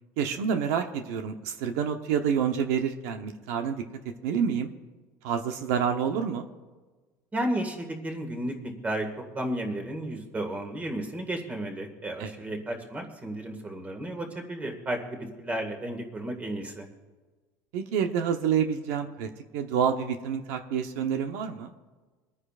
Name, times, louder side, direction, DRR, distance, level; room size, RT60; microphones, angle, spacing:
voice 1, 0.2-3.8 4.2-4.7 5.2-6.5 12.2-12.6 17.7-19.3 19.5-21.7, right 7 dB, 80° right, 6 dB, 0.9 m, -28 dB
voice 2, 7.3-9.1 9.3-16.9, right 1 dB, 15° right, 3 dB, 1.9 m, -33 dB
25.5 x 9.7 x 2.5 m, 1.3 s
cardioid pair, 135°, 9 cm